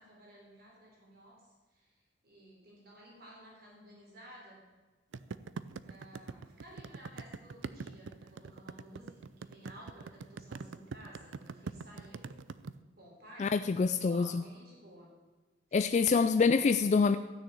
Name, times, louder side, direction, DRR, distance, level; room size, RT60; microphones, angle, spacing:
voice 1, 0.0-4.6 5.8-12.3 13.0-15.1 15.7-16.1, right 1 dB, 55° right, -3 dB, 3.8 m, -55 dB
sound 1, 5.1-12.7, right 4 dB, 85° right, 0.5 m, -42 dB
voice 2, 13.4-14.4 15.7-17.2, left 5 dB, 40° left, 10 dB, 0.3 m, -26 dB
13.0 x 6.5 x 8.4 m, 1.3 s
head